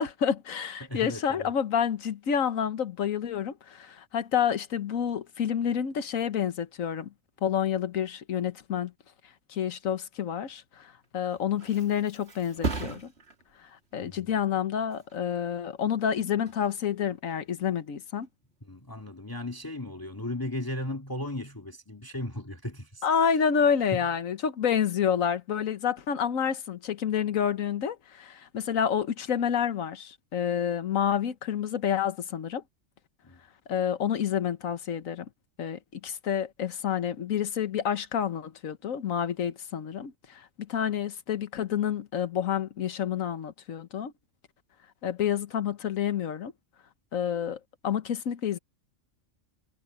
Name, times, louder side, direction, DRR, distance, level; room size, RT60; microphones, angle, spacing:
voice 1, 0.0-7.1 7.4-8.9 9.5-13.1 13.9-18.3 23.0-32.6 33.7-35.3 35.6-44.1 45.0-46.5 47.1-48.6, left 8 dB, 90° left, 1.5 m, -29 dB
voice 2, 0.8-1.5 14.0-14.2 18.7-23.1 33.2-33.4, left 1 dB, 15° left, 2.2 m, -36 dB
Thump thud, 11.0-18.5 18.9-19.3, right 3 dB, 50° right, 2.4 m, -40 dB
omnidirectional pair, 1.4 m